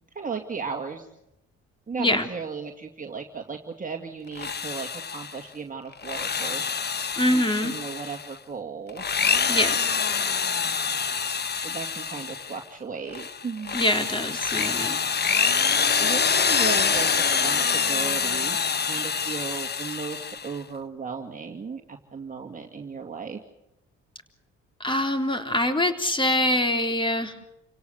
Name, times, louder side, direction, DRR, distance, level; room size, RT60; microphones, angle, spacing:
voice 1, 0.1-1.1 1.9-9.0 11.6-13.8 16.0-18.6 18.9-23.4, right 5 dB, 25° right, 2 dB, 2.3 m, -36 dB
voice 2, 2.0-2.3 7.2-7.7 9.5-9.8 13.7-15.0 24.8-27.3, left 1 dB, 15° left, 6 dB, 3.8 m, -24 dB
Drill, 4.3-5.4 5.9-8.3 8.9-12.6 13.1-20.6, left 6 dB, 35° left, 1.1 m, -26 dB
29.0 x 17.5 x 7.9 m, 0.84 s
cardioid pair, 90°, 30 cm